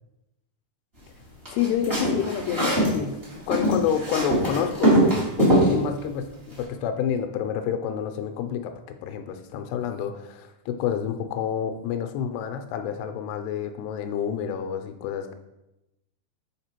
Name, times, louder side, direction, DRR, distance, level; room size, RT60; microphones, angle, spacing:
sound 1, 1.4-2.9 3.2-5.7, right 1 dB, 55° right, 0.6 m, -21 dB
voice 1, 1.5-5.0 5.4-15.3, left 8 dB, 85° left, 7 dB, 2.6 m, -29 dB
7.2 x 3.3 x 4.3 m, 0.94 s
omnidirectional pair, 4.6 m